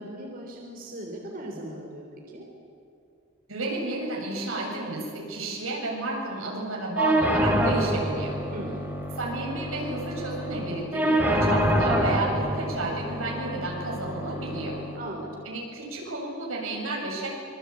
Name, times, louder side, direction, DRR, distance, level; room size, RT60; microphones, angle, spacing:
voice 1, 0.0-2.5 8.5-8.8 15.0-15.4, right 1 dB, 45° right, 0 dB, 3.6 m, -38 dB
voice 2, 3.5-8.4 9.2-14.8 15.5-17.4, right 2 dB, 85° right, -1 dB, 7.8 m, -31 dB
sound 1, 7.0-15.0, equal, 10° right, 3.7 m, -27 dB
26.0 x 24.5 x 8.7 m, 2.4 s
head